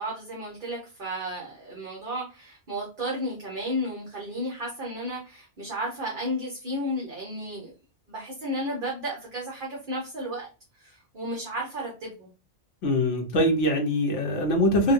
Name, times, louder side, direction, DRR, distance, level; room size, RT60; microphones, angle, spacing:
voice 1, 0.0-7.7 8.1-10.5 10.7-12.3, equal, 45° right, -4 dB, 1.2 m, -33 dB
voice 2, 12.8-14.9, equal, 75° left, 2 dB, 1.2 m, -23 dB
4.0 x 2.3 x 2.5 m, 0.32 s
omnidirectional pair, 1.2 m